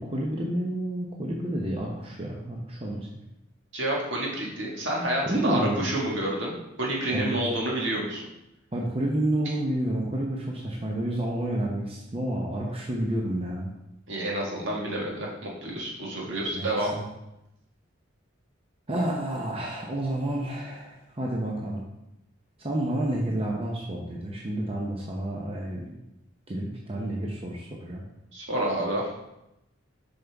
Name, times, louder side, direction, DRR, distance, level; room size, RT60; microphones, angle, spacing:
voice 1, 0.0-3.1 5.3-5.9 7.1-7.4 8.7-13.7 16.5-17.1 18.9-21.8 22.6-25.8 26.5-28.0, right 1 dB, 30° right, -2 dB, 0.8 m, -30 dB
voice 2, 3.7-8.2 14.1-15.3 15.6-16.9 28.3-29.1, right 1 dB, 65° right, -2 dB, 1.7 m, -29 dB
7.2 x 5.5 x 3.5 m, 0.89 s
head